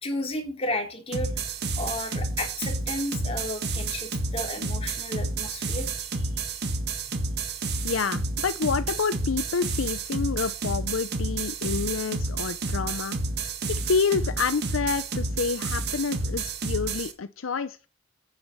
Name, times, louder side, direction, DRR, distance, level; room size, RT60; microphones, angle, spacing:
voice 1, 0.0-1.5 1.8-5.9 6.1-6.3 7.8-7.9, left 1 dB, 30° left, 4.0 m, -33 dB
sound 1, 1.1-17.1, right 3 dB, 55° right, 1.8 m, -30 dB
voice 2, 7.8-13.2 13.7-17.9, left 5 dB, 70° left, 0.6 m, -28 dB
10.5 x 9.7 x 5.4 m
head